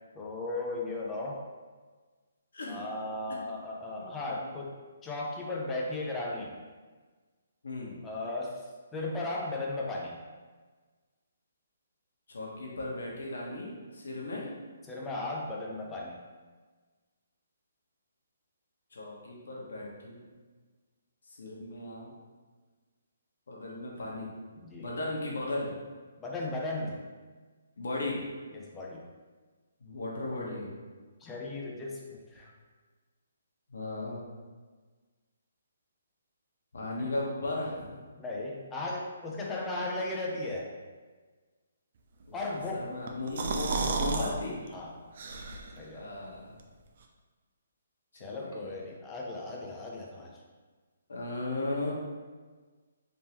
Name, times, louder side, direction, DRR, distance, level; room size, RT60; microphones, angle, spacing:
voice 1, 0.1-1.4 2.7-4.7 5.0-6.6 8.0-8.6 8.9-10.1 14.9-16.2 24.6-24.9 26.2-27.0 28.5-29.1 31.2-32.5 37.0-37.1 38.2-40.7 42.3-42.8 44.1-44.4 44.7-45.1 45.8-46.1 48.2-50.4, left 2 dB, 10° left, -2 dB, 0.5 m, -36 dB
voice 2, 2.5-2.9 3.3-3.4 4.0-4.1 4.3-4.5 7.6-8.0 12.3-14.5 18.9-20.2 21.4-22.1 23.5-24.3 24.8-25.7 27.8-28.3 29.8-30.8 33.7-34.2 36.7-38.0 42.3-42.4 42.7-44.6 45.9-46.6 48.2-48.8 51.1-51.9, left 2 dB, 80° left, -3 dB, 1.1 m, -36 dB
sound 1, 43.1-44.3 44.7-44.8 45.2-45.8, right 3 dB, 50° right, 0.4 m, -31 dB
3.6 x 2.9 x 3.0 m, 1.4 s
hypercardioid pair, 160°, 0 cm